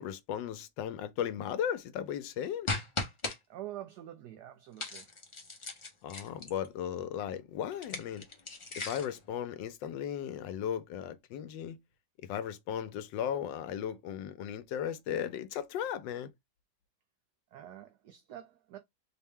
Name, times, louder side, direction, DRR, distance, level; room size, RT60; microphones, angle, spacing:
voice 1, 0.0-2.7 6.0-8.3 8.8-11.8 12.2-16.3, left 9 dB, 85° left, 1.3 m, -36 dB
sound 1, 2.7-3.4 4.8-6.7 7.7-9.2, left 3 dB, 50° left, 0.3 m, -37 dB
voice 2, 3.5-5.1 17.5-18.8, right 12 dB, 70° right, 1.2 m, -46 dB
4.3 x 2.1 x 3.5 m
omnidirectional pair, 2.0 m